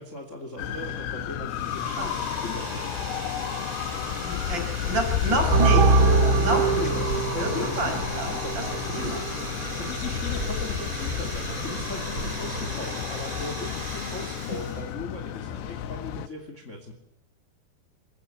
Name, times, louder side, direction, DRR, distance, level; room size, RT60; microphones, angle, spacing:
voice 1, 0.0-3.3 6.4-7.1 7.3-9.2 9.8-16.9, left 2 dB, 25° left, 4 dB, 2.2 m, -38 dB
sound 1, 0.6-16.3, left 10 dB, 85° left, 3.2 m, -32 dB
sound 2, 1.5-14.9, right 1 dB, 10° right, 4.4 m, -37 dB
voice 2, 4.2-5.9 6.3-6.9 7.4-8.3 8.5-8.7 8.9-9.2 14.1-14.2, right 1 dB, 25° right, 3 dB, 6.0 m, -29 dB
sound 3, 5.5-12.7, right 3 dB, 45° right, 1.8 m, -24 dB
27.5 x 15.5 x 8.5 m, 0.83 s
omnidirectional pair, 4.7 m